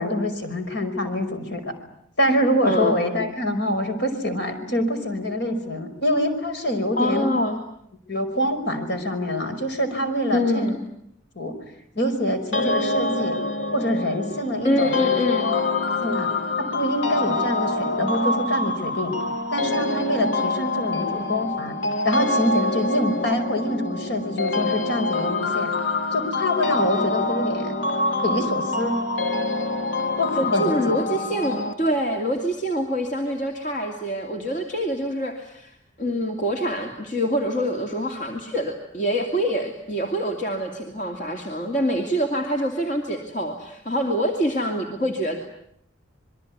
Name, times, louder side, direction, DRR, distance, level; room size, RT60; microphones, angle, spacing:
voice 1, 0.0-1.8 2.2-7.3 8.1-10.7 11.4-11.5 12.0-13.4 13.7-15.6 16.0-16.3 16.6-19.2 19.5-21.8 22.0-25.7 26.1-27.8 28.2-29.0 30.2-30.9, left 1 dB, 60° left, 7 dB, 5.4 m, -25 dB
voice 2, 6.9-7.6 10.3-10.8 14.6-15.5 30.4-45.4, equal, 40° left, 2 dB, 2.8 m, -25 dB
sound 1, 12.5-31.7, left 2 dB, 75° left, 2.3 m, -26 dB
27.0 x 22.5 x 9.5 m, 0.73 s
head